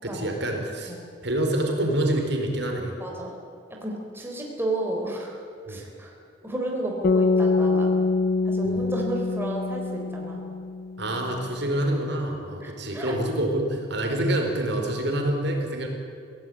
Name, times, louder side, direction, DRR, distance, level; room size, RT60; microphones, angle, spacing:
voice 1, 0.0-0.9 1.2-2.9 5.7-5.8 8.6-8.8 11.0-15.9, right 1 dB, 60° right, 2 dB, 4.5 m, -26 dB
voice 2, 3.0-3.3 3.8-5.4 5.7-6.1 6.4-7.9 8.4-10.5 12.6-13.2, right 1 dB, 10° right, -1 dB, 3.9 m, -32 dB
sound 1, 7.0-11.3, left 3 dB, 50° left, 0.5 m, -24 dB
26.0 x 17.0 x 9.1 m, 2.4 s
head